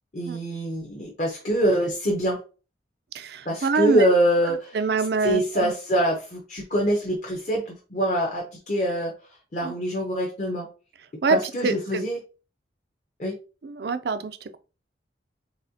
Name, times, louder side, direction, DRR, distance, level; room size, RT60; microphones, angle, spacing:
voice 1, 0.1-2.4 3.5-4.8 5.2-9.1 9.5-10.7 11.3-12.2 13.2-13.3, right 1 dB, 40° left, 0.8 m, -24 dB
voice 2, 3.1-4.1 4.7-5.7 9.6-9.7 11.2-11.4 11.6-12.0 13.6-14.6, right 4 dB, 60° right, 0.4 m, -25 dB
4.1 x 3.6 x 2.7 m
head